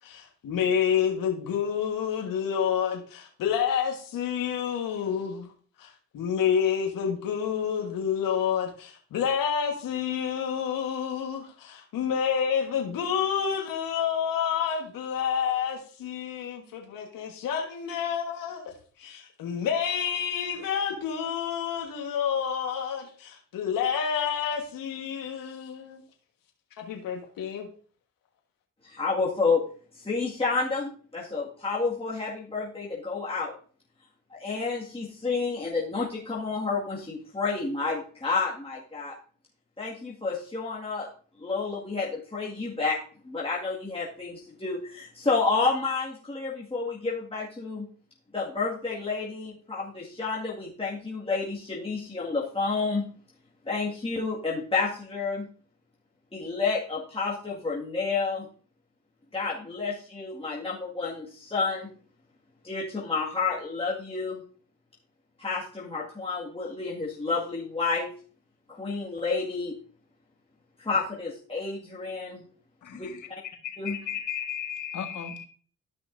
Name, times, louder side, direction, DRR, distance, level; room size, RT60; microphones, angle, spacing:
voice 1, 0.0-5.5 5.8-26.0 26.8-27.7, left 7 dB, 75° left, 1 dB, 1.6 m, -29 dB
voice 2, 28.8-29.6 29.9-33.5 34.3-39.1 39.8-41.1 41.4-43.0 43.2-47.9 48.3-53.1 53.7-55.4 56.3-58.5 59.3-61.9 62.6-64.4 65.4-68.1 68.7-69.7 70.8-72.4 72.9-73.4 73.8-74.0, left 4 dB, 15° left, -6 dB, 2.0 m, -30 dB
voice 3, 72.8-75.5, left 8 dB, 60° left, 4 dB, 1.8 m, -35 dB
13.0 x 5.7 x 2.7 m, 0.43 s
cardioid pair, 70°, 33 cm